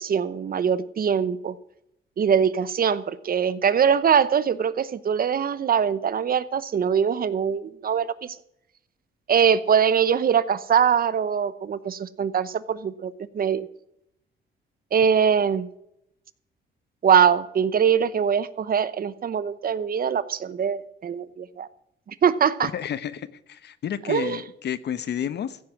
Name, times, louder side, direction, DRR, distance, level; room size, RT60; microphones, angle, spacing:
voice 1, 0.0-1.6 2.2-8.4 9.3-13.7 14.9-15.7 17.0-21.7 22.1-22.7 24.1-24.4, right 7 dB, 45° right, 16 dB, 0.9 m, -22 dB
voice 2, 22.6-25.6, left 9 dB, 60° left, 15 dB, 0.9 m, -31 dB
15.0 x 9.6 x 6.0 m, 0.78 s
cardioid pair, 90°, 20 cm